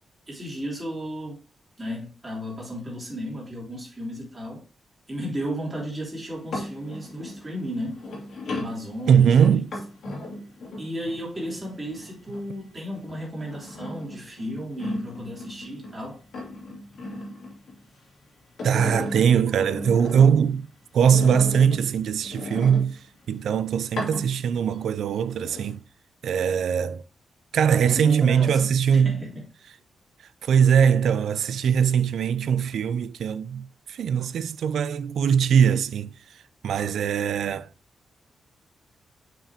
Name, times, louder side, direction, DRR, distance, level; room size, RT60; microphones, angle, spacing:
voice 1, 0.3-1.4 1.8-4.6 5.1-8.0 8.5-9.3 10.8-16.2 27.8-29.4, equal, 15° right, 3.2 m, -34 dB
sound 1, 6.3-12.7 13.1-16.0 16.3-18.1 18.4-20.5 21.1-23.3 23.8-24.8 25.1-25.8, left 1 dB, 65° left, 2.5 m, -36 dB
voice 2, 9.1-9.7 18.6-20.7 20.9-25.8 26.2-27.0 27.5-29.2 30.4-37.7, right 7 dB, 80° right, 0.4 m, -21 dB
7.4 x 5.6 x 2.8 m
wide cardioid pair, 155°, 0 cm